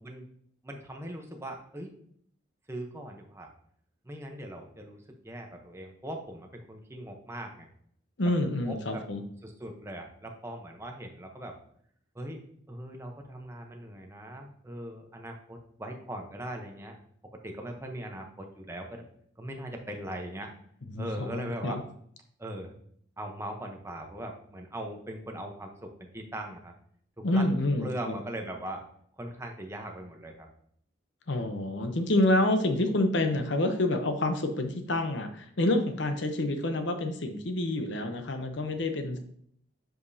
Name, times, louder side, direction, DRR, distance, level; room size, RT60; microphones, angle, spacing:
voice 1, 0.6-1.9 2.7-3.5 4.0-7.7 8.7-9.0 9.4-11.6 12.1-12.4 12.7-17.0 17.4-19.0 19.4-20.5 21.0-21.8 22.4-22.8 23.2-26.7 27.2-27.5 27.8-28.8 29.2-30.5, right 1 dB, 15° right, 2 dB, 0.8 m, -40 dB
voice 2, 8.2-9.2 20.9-21.8 27.2-27.9 31.3-39.2, left 1 dB, 65° left, 6 dB, 0.8 m, -28 dB
7.7 x 5.1 x 2.7 m, 0.65 s
head